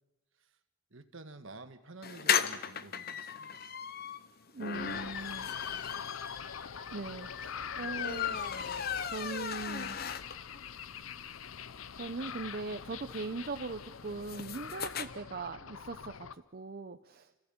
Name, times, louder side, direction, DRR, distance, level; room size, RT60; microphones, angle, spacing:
voice 1, 0.9-3.7 8.8-9.1, right 3 dB, 65° right, 8 dB, 1.6 m, -51 dB
sound 1, 2.0-10.6 11.0-11.1 11.3-11.4 11.7-15.1, left 8 dB, 50° left, 0.9 m, -36 dB
voice 2, 4.5-5.5 6.9-8.4 9.0-10.0 11.9-17.4, right 3 dB, 50° right, 7 dB, 0.7 m, -40 dB
sound 2, 4.7-16.4, left 7 dB, 80° left, 0.7 m, -44 dB
28.5 x 15.0 x 8.7 m, 1.1 s
head